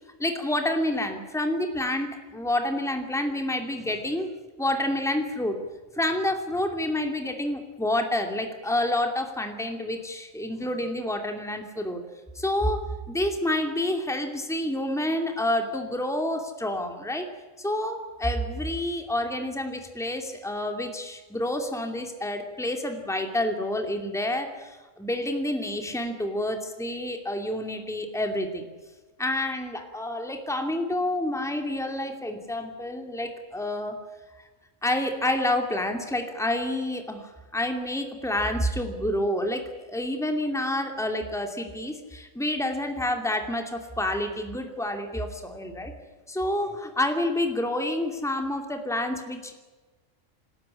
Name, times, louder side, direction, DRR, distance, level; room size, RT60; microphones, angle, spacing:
voice 1, 0.2-4.3 4.6-5.6 6.0-12.0 12.3-17.3 17.6-28.6 29.2-34.0 34.8-45.9 46.3-49.5, left 1 dB, ahead, 4 dB, 2.5 m, -28 dB
27.5 x 13.5 x 9.8 m, 1.3 s
omnidirectional pair, 1.3 m